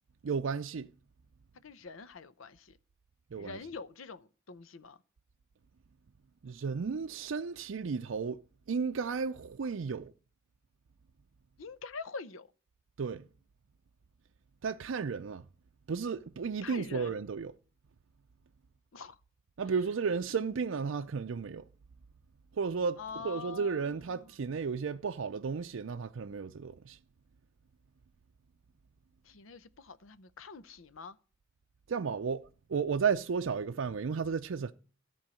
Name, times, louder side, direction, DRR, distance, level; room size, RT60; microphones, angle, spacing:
voice 1, 0.2-0.9 3.3-3.6 6.4-8.4 8.7-10.1 13.0-13.3 14.6-15.4 15.9-17.5 19.6-21.7 22.5-23.0 23.2-27.0 31.9-34.7, right 5 dB, 70° right, 0.5 m, -33 dB
voice 2, 1.6-2.8 3.4-5.0 11.6-12.5 16.6-17.2 18.9-19.2 23.0-23.9 29.2-31.2, left 4 dB, 85° left, 0.7 m, -45 dB
13.5 x 4.6 x 7.5 m
head